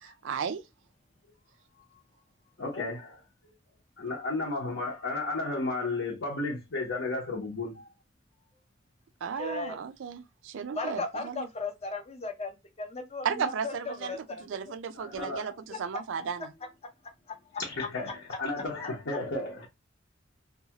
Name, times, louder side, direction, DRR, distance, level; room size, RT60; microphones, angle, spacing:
voice 1, 0.2-0.6 9.2-11.5 13.2-16.5, right 6 dB, 70° right, 0.4 m, -34 dB
voice 2, 2.6-3.2 4.0-7.9 14.9-15.5 17.7-19.7, left 2 dB, 65° left, 0.8 m, -33 dB
voice 3, 9.4-9.8 10.7-14.7 15.7-15.8 17.3-17.6, left 3 dB, 30° left, 0.6 m, -37 dB
2.6 x 2.3 x 2.8 m
head